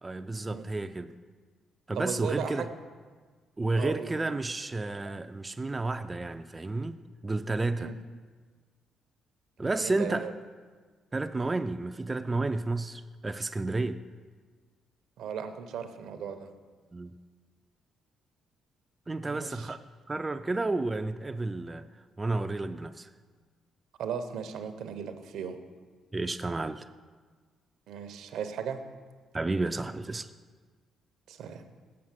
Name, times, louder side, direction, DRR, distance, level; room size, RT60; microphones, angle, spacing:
voice 1, 0.0-1.1 1.9-2.7 3.6-7.0 7.2-8.0 9.6-10.3 11.1-14.0 16.9-17.2 19.1-19.8 20.1-21.9 22.2-23.1 26.1-26.9 29.3-30.3, right 2 dB, 20° right, 0.3 m, -31 dB
voice 2, 1.9-2.7 3.8-4.1 7.8-7.9 9.6-10.3 15.2-16.5 19.2-19.7 24.0-25.6 27.9-28.8 31.3-31.6, right 7 dB, 80° right, 0.6 m, -37 dB
7.6 x 5.8 x 7.3 m
cardioid pair, 90°, 0 cm